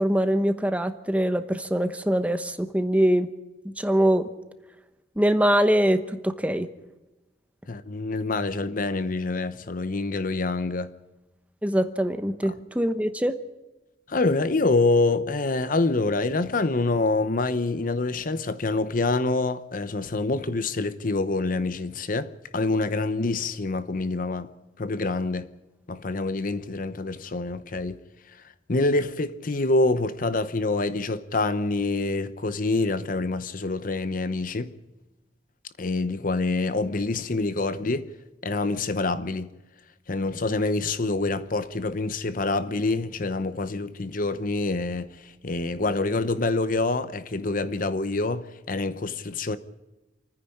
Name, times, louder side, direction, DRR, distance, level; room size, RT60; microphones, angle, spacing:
voice 1, 0.0-3.3 3.6-4.3 5.2-6.7 11.6-13.3, equal, 10° right, 1.0 m, -23 dB
voice 2, 7.7-10.9 14.1-24.5 24.8-25.5 25.9-28.0 28.7-34.7 35.8-38.1 38.4-39.5 40.1-49.6, left 3 dB, 45° left, 0.8 m, -26 dB
28.0 x 9.8 x 9.9 m
head